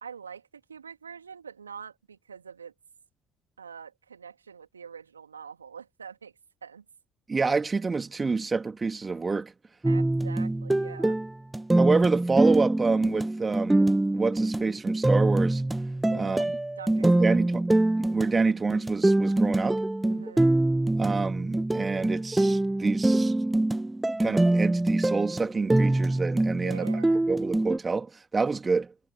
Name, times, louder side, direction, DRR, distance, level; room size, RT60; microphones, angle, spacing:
voice 1, 0.0-2.7 3.6-6.3 6.6-6.8 9.9-11.2 16.0-16.5 16.8-17.3 20.0-20.6 26.5-27.3, right 6 dB, 85° right, 2.7 m, -44 dB
voice 2, 7.3-9.5 11.8-13.8 14.1-15.6 16.1-16.6 17.0-17.6 18.0-19.8 21.0-23.3 24.2-26.9 27.3-28.9, right 4 dB, 25° right, 2.8 m, -27 dB
sound 1, 9.8-27.8, right 2 dB, 10° right, 1.6 m, -24 dB
figure-of-eight pair, 50°, 0 cm